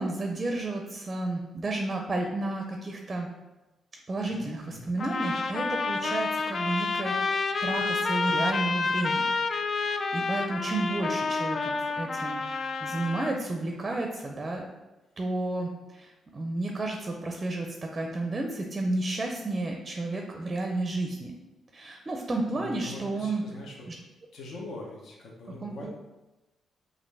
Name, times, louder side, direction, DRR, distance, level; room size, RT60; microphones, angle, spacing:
voice 1, 0.0-3.3 4.1-9.2 9.7-11.7 12.0-14.7 15.2-21.3 21.7-23.4 25.6-25.9, right 2 dB, 30° right, 2 dB, 0.5 m, -32 dB
voice 2, 4.3-4.8 22.5-23.8 24.3-25.9, left 2 dB, 70° left, -2 dB, 0.9 m, -43 dB
sound 1, 5.0-13.4, left 4 dB, 45° left, 0.3 m, -29 dB
5.1 x 2.6 x 3.3 m, 1.1 s
cardioid pair, 95°, 0 cm